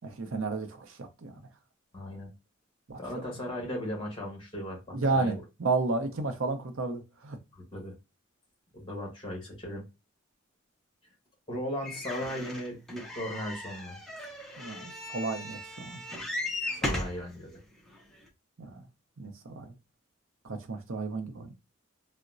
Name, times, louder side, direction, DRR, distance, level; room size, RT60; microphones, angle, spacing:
voice 1, 0.0-1.4 2.9-3.3 4.9-7.4 14.6-16.0 18.6-18.9 19.2-19.7 20.4-21.5, right 3 dB, 75° right, 0.6 m, -32 dB
voice 2, 1.9-2.3 3.0-5.4 7.5-7.9 8.7-9.8 11.5-14.0 16.8-17.6, left 1 dB, 25° left, 1.2 m, -37 dB
sound 1, 11.8-17.2 17.9-18.0 18.3-18.4, left 1 dB, ahead, 0.5 m, -37 dB
3.9 x 2.1 x 2.4 m
head